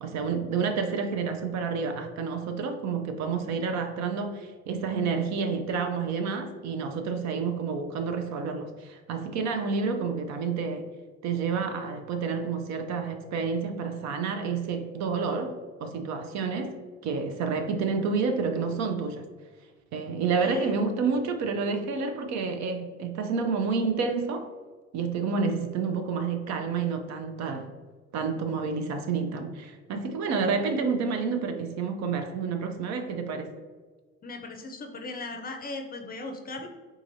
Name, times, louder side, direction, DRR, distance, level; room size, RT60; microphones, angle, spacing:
voice 1, 0.0-10.8 11.2-16.7 17.0-19.2 19.9-24.5 24.9-27.7 28.1-33.5, right 5 dB, 60° right, 6 dB, 0.5 m, -29 dB
voice 2, 20.4-20.7 34.2-36.7, left 3 dB, 30° left, 4 dB, 0.5 m, -38 dB
3.7 x 2.9 x 2.6 m, 1.4 s
supercardioid pair, 75°, 31 cm